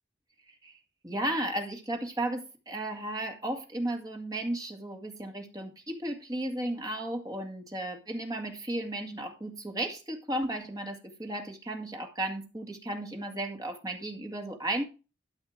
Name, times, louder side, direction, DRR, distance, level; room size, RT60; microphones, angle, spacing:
voice 1, 0.5-0.8 1.0-14.8, right 1 dB, 20° right, 3 dB, 2.1 m, -34 dB
13.0 x 5.5 x 4.8 m, 0.31 s
head